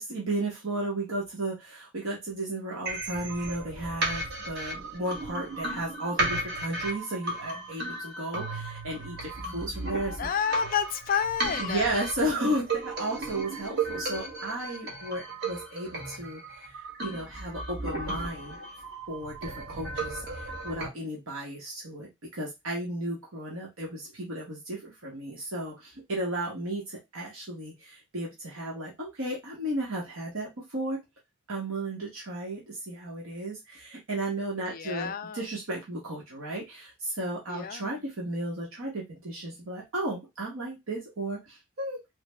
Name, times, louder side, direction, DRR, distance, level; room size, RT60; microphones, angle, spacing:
voice 1, 0.0-10.2 11.6-18.6 19.1-31.0 31.5-42.0, right 1 dB, 70° right, 1.0 m, -34 dB
sound 1, 2.9-20.9, right 2 dB, 50° right, 1.1 m, -35 dB
voice 2, 10.2-11.9 34.7-35.5 37.5-38.0, left 7 dB, 40° left, 0.3 m, -30 dB
3.2 x 2.1 x 3.2 m
head